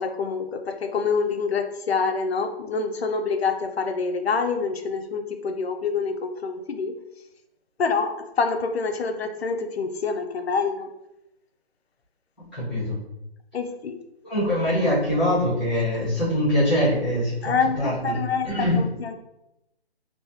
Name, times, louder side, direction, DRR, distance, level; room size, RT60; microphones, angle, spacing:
voice 1, 0.0-6.9 7.8-10.9 13.5-14.0 17.4-19.1, left 5 dB, 70° left, 5 dB, 0.6 m, -26 dB
voice 2, 12.5-13.0 14.2-17.3 17.8-18.2 18.4-18.8, left 1 dB, ahead, -12 dB, 1.1 m, -23 dB
3.3 x 2.8 x 2.8 m, 0.88 s
figure-of-eight pair, 165°, 33 cm